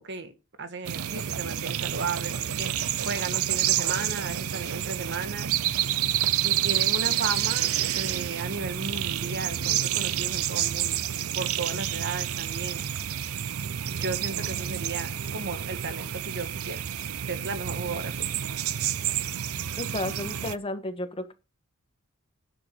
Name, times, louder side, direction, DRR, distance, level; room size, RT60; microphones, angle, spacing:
voice 1, 0.0-5.8 6.4-11.0 11.3-12.9 13.9-16.8 17.3-18.4, right 4 dB, 55° right, 1.6 m, -35 dB
sound 1, 0.8-20.5, right 11 dB, 75° right, 0.6 m, -29 dB
voice 2, 19.8-21.3, left 1 dB, 25° left, 1.4 m, -33 dB
10.5 x 7.6 x 5.3 m
head